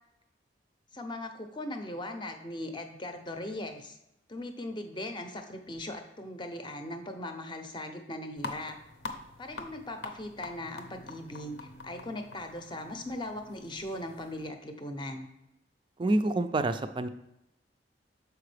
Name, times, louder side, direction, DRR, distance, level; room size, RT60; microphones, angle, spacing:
voice 1, 0.9-4.0 4.3-8.8 9.4-11.6 11.8-15.3, left 1 dB, 25° left, 6 dB, 0.6 m, -39 dB
sound 1, 8.4-14.5, left 3 dB, 80° left, 0.7 m, -45 dB
voice 2, 16.0-17.1, right 2 dB, 25° right, 10 dB, 0.3 m, -27 dB
6.7 x 4.7 x 3.3 m, 0.87 s
head